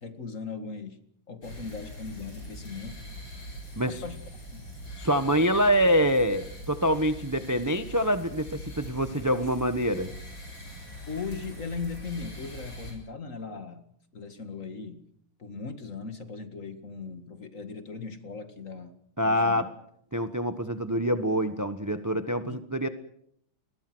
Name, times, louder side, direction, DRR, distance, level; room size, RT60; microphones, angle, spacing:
voice 1, 0.0-1.0 1.3-3.0 3.8-4.2 4.5-4.7 11.1-13.8 14.1-15.0 15.4-19.0 19.2-19.6 22.4-22.6, left 5 dB, 40° left, 9 dB, 2.2 m, -38 dB
sound 1, 1.4-12.9, equal, 65° left, 8.3 m, -42 dB
voice 2, 5.0-10.1 19.2-19.7 20.1-22.9, equal, 15° right, 10 dB, 0.7 m, -25 dB
29.5 x 22.0 x 6.2 m, 0.70 s
omnidirectional pair, 2.3 m